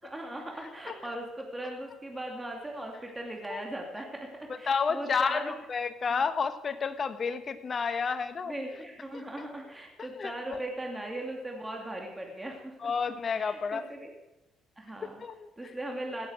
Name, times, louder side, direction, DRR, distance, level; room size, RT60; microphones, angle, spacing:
voice 1, 0.0-5.5 6.1-6.2 8.5-12.9 13.3-14.1 14.8-15.2 15.6-16.3, right 1 dB, 15° right, 1 dB, 2.9 m, -39 dB
voice 2, 4.6-8.5 10.0-10.6 12.8-13.9 15.2-15.7, left 5 dB, 40° left, 10 dB, 1.5 m, -31 dB
16.5 x 8.5 x 7.8 m, 0.98 s
supercardioid pair, 75°, 0 cm